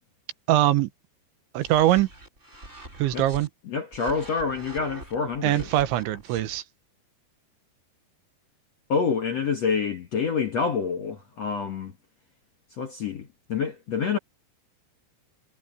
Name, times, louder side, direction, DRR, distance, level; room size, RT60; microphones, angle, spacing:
voice 1, 0.5-0.9 1.6-2.1 3.0-3.5 5.4-6.6, right 14 dB, 80° right, 3.5 m, -22 dB
sound 1, 1.6-3.5 3.9-6.6, right 1 dB, 15° right, 6.6 m, -44 dB
voice 2, 3.7-5.7 8.9-11.9 12.8-14.2, left 5 dB, 60° left, 1.8 m, -27 dB
omnidirectional pair, 5.2 m